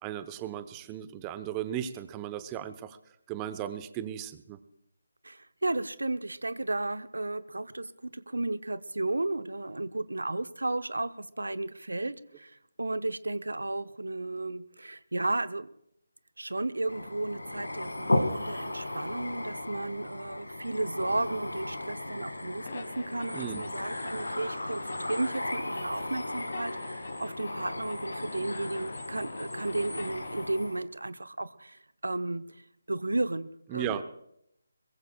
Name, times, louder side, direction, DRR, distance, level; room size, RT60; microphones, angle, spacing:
voice 1, 0.0-3.0 3.3-4.6 23.3-23.6 33.7-34.0, right 10 dB, 15° right, 11 dB, 0.8 m, -36 dB
voice 2, 5.2-15.7 16.4-34.0, right 2 dB, 80° right, 13 dB, 0.7 m, -34 dB
sound 1, 16.9-30.8, left 1 dB, 85° left, 2.1 m, -35 dB
sound 2, 22.6-30.4, left 4 dB, 45° left, 2.3 m, -47 dB
22.5 x 21.5 x 2.4 m, 0.75 s
figure-of-eight pair, 155°, 0 cm